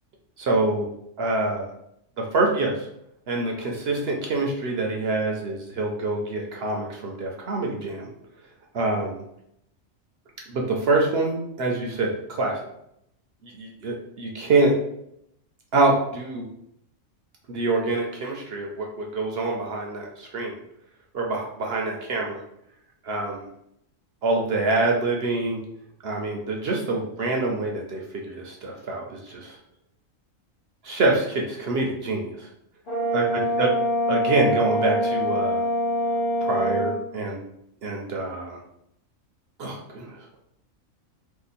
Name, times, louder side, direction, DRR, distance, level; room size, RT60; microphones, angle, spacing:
voice 1, 0.4-0.9 1.2-1.7 2.2-2.9 3.3-8.1 8.7-9.2 10.5-12.6 13.4-14.7 15.7-16.5 17.5-20.5 21.1-22.4 23.0-23.4 24.2-25.6 26.0-29.6 30.8-32.5 33.1-33.7 34.1-35.6 36.4-37.4 37.8-38.6 39.6-40.2, right 2 dB, 60° right, 0 dB, 0.7 m, -25 dB
Brass instrument, 32.9-37.0, equal, 50° left, 0.8 m, -24 dB
2.9 x 2.3 x 4.0 m, 0.75 s
omnidirectional pair, 1.4 m